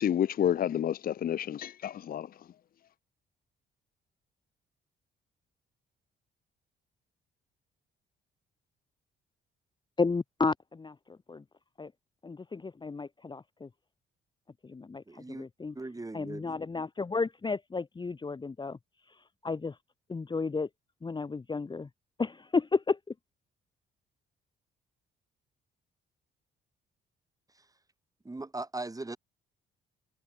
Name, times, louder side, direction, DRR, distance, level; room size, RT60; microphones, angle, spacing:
voice 1, 0.0-2.3, left 10 dB, 50° left, 0.6 m, -29 dB
voice 2, 10.0-10.9 11.3-11.4 11.8-11.9 12.2-13.7 14.6-15.7 16.1-18.8 19.4-19.7 20.1-20.7 21.0-21.9 22.2-23.0, left 4 dB, 25° left, 0.9 m, -32 dB
voice 3, 15.1-15.5 15.7-16.5 27.5-27.7 28.2-29.2, right 2 dB, 15° right, 7.1 m, -39 dB
cardioid pair, 90°, 20 cm